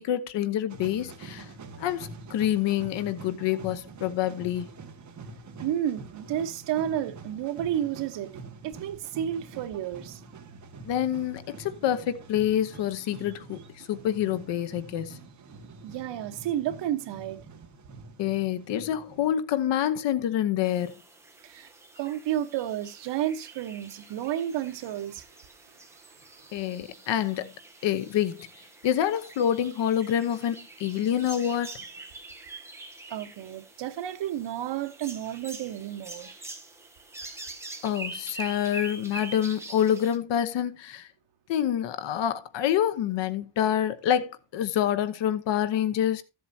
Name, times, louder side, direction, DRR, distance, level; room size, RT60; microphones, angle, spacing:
voice 1, 0.0-1.5 1.8-4.7 10.8-15.2 18.2-20.9 26.5-27.5 27.8-28.5 28.8-31.7 37.8-41.1 41.5-46.2, left 10 dB, 85° left, 1.1 m, -27 dB
sound 1, 0.7-19.3, right 4 dB, 40° right, 1.8 m, -46 dB
voice 2, 5.6-10.2 15.8-17.4 21.4-21.7 22.0-25.2 26.2-26.3 33.1-36.3, right 11 dB, 80° right, 1.3 m, -31 dB
sound 2, 20.6-40.2, right 2 dB, 5° right, 1.3 m, -44 dB
14.5 x 7.7 x 2.8 m
cardioid pair, 170°, 42 cm